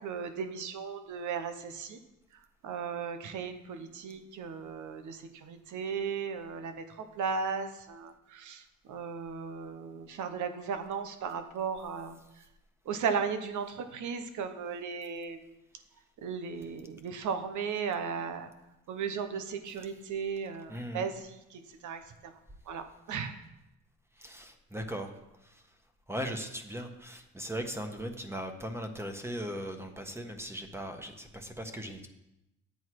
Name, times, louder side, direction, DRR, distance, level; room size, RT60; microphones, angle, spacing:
voice 1, 0.0-2.0 2.6-12.2 12.8-15.6 16.2-18.5 18.9-22.4 22.7-23.4, right 6 dB, 75° right, 8 dB, 1.1 m, -36 dB
voice 2, 20.7-21.1 24.1-25.1 25.4-25.7 26.1-32.1, equal, 10° right, 5 dB, 1.4 m, -39 dB
10.5 x 8.1 x 4.8 m, 0.91 s
cardioid pair, 90°, 30 cm